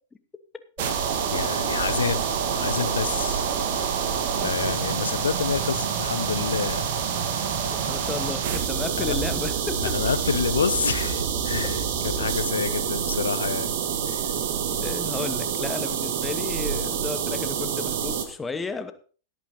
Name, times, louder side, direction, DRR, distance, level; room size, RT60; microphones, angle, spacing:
sound 1, 0.8-18.2, right 7 dB, 50° right, 2.0 m, -27 dB
voice 1, 1.3-3.5 3.7-4.0 4.4-6.9 7.2-7.5 9.0-9.2 9.8-11.8 12.2-13.7 14.1-14.3, left 6 dB, 70° left, 14 dB, 0.6 m, -28 dB
voice 2, 7.7-10.1 14.7-18.9, left 4 dB, 15° left, 10 dB, 1.2 m, -33 dB
16.5 x 8.7 x 4.1 m, 0.39 s
figure-of-eight pair, 90°, 0 cm